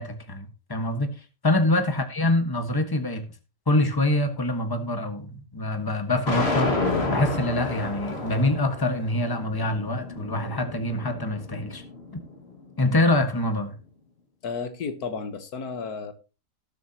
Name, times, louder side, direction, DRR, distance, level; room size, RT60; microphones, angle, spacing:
voice 1, 0.0-3.2 3.7-11.8 12.8-13.8, left 1 dB, 15° left, 1.5 m, -25 dB
sound 1, 6.3-12.4, left 2 dB, 45° left, 2.3 m, -30 dB
voice 2, 14.4-16.1, left 5 dB, 90° left, 1.8 m, -32 dB
18.5 x 7.9 x 2.9 m
omnidirectional pair, 1.6 m